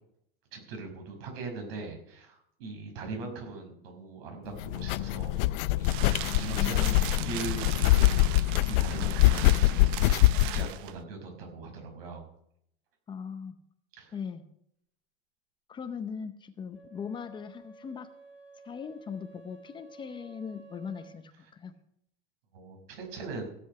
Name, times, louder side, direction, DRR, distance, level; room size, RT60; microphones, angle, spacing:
voice 1, 0.5-5.4 5.8-12.2 13.9-14.1 22.5-23.5, right 3 dB, 85° right, 3 dB, 5.5 m, -41 dB
sound 1, 4.6-10.7, left 16 dB, 60° left, 0.6 m, -24 dB
sound 2, 5.3-11.0, right 15 dB, 60° right, 0.7 m, -39 dB
voice 2, 6.5-7.0 13.1-13.6 14.1-14.5 15.7-18.1 18.6-21.7, left 6 dB, 15° left, 9 dB, 0.6 m, -39 dB
Wind instrument woodwind instrument, 16.7-21.2, right 3 dB, 5° right, 2.1 m, -52 dB
16.5 x 7.8 x 6.4 m, 0.72 s
supercardioid pair, 165°, 29 cm